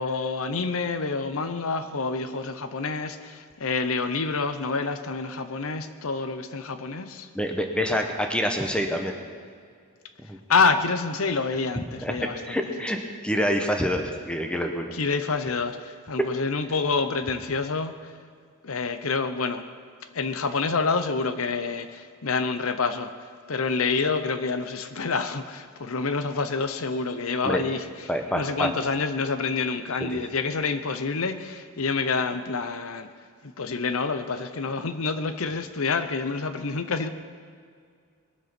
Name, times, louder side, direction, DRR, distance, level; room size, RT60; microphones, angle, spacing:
voice 1, 0.0-7.3 10.5-12.6 14.9-18.1 18.6-19.6 20.1-23.1 23.5-28.1 28.3-33.1 33.4-37.1, left 4 dB, 70° left, 10 dB, 0.7 m, -27 dB
voice 2, 7.3-9.1 10.3-10.4 12.0-14.9 16.2-16.3 27.4-27.6 28.1-28.7 30.0-30.2, equal, 5° left, 4 dB, 1.0 m, -27 dB
21.0 x 8.1 x 6.0 m, 2.1 s
head